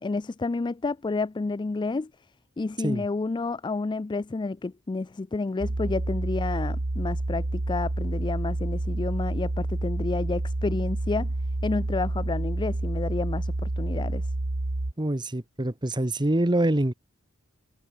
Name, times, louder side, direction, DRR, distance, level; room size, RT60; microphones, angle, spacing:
voice 1, 0.0-2.1 2.6-11.3 11.6-14.2, left 3 dB, 20° left, 0.4 m, -30 dB
sound 1, 5.6-14.9, right 2 dB, 60° right, 1.4 m, -29 dB
voice 2, 15.0-16.9, right 1 dB, 20° right, 1.2 m, -25 dB
head